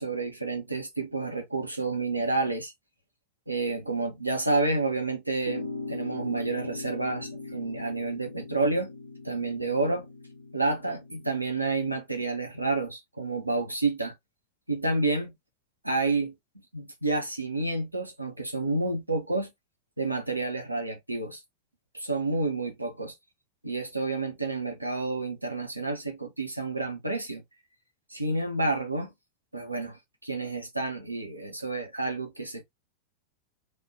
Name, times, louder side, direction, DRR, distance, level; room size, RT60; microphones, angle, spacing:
voice 1, 0.0-2.7 3.5-8.9 9.2-10.1 10.5-14.1 14.7-15.3 15.8-16.3 16.7-19.5 20.0-21.4 21.9-23.1 23.6-27.4 28.1-29.1 29.5-32.6, right 3 dB, 85° right, 0.8 m, -29 dB
sound 1, 5.5-11.9, left 3 dB, 75° left, 0.5 m, -40 dB
3.3 x 2.4 x 2.7 m
figure-of-eight pair, 90°, 0 cm